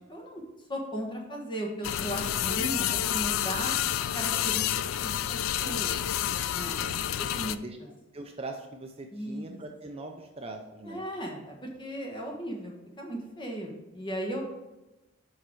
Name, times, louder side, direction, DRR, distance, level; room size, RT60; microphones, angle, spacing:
voice 1, 0.1-0.4 0.7-3.7 4.1-4.8 5.0-6.0 6.5-6.8 7.4-7.6 9.1-9.6 10.9-14.4, equal, 20° left, -1 dB, 1.4 m, -36 dB
sound 1, 1.8-7.6, left 11 dB, 80° left, 0.3 m, -29 dB
voice 2, 6.8-7.8 8.1-11.0, right 2 dB, 30° right, 3 dB, 0.5 m, -42 dB
6.4 x 5.5 x 4.5 m, 1.0 s
head